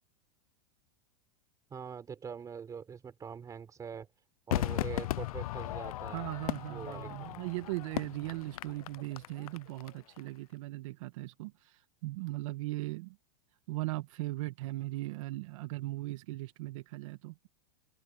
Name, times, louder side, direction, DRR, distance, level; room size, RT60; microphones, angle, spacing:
voice 1, 1.7-4.1 4.5-6.3 6.7-7.5, right 6 dB, 15° right, 4.4 m, -44 dB
Crowd / Fireworks, 4.5-9.9 10.2-10.3, left 15 dB, 75° left, 0.6 m, -37 dB
voice 2, 6.1-13.2 13.7-17.4, right 19 dB, 60° right, 1.7 m, -38 dB
supercardioid pair, 145°, 19 cm